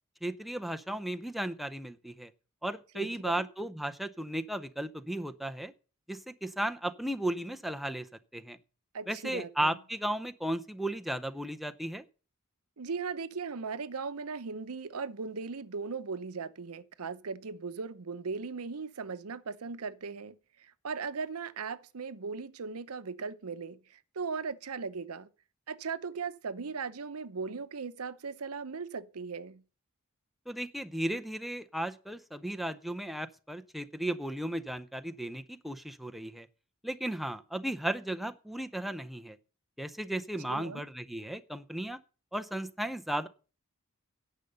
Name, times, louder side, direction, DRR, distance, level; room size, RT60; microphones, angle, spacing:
voice 1, 0.2-2.3 2.6-5.7 6.1-8.1 8.3-8.6 9.1-12.0 30.5-36.5 36.8-39.4 39.8-42.0 42.3-43.3, right 1 dB, ahead, 0.6 m, -35 dB
voice 2, 2.9-3.5 8.9-9.8 12.8-25.3 25.7-29.6 40.5-40.8, right 5 dB, 85° right, 0.8 m, -38 dB
10.5 x 6.6 x 6.7 m
head